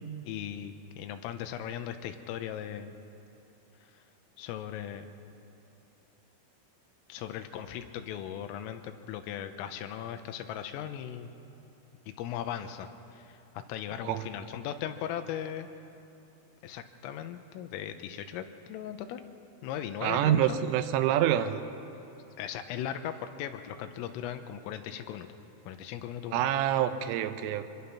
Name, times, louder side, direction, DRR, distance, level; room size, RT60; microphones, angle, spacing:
voice 1, 0.3-2.9 3.9-4.0 4.4-5.1 7.1-11.3 12.1-13.4 13.7-15.7 16.6-19.2 19.6-20.6 22.4-25.3 25.7-26.5, left 10 dB, 85° left, 8 dB, 3.5 m, -38 dB
voice 2, 20.0-21.6 26.3-27.7, right 11 dB, 80° right, 10 dB, 3.3 m, -27 dB
24.5 x 21.5 x 5.8 m, 3.0 s
omnidirectional pair, 5.9 m